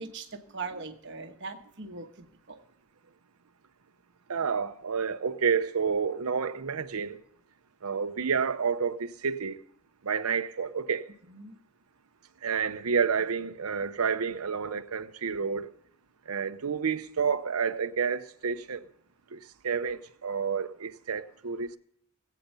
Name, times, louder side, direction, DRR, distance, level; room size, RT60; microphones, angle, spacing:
voice 1, 0.0-2.6 11.3-11.5, right 4 dB, 55° right, 1.2 m, -41 dB
voice 2, 4.3-7.2 7.8-9.6 10.0-11.1 12.4-15.7 16.3-18.9 19.3-21.7, right 6 dB, 85° right, 0.7 m, -29 dB
20.5 x 8.4 x 5.5 m
head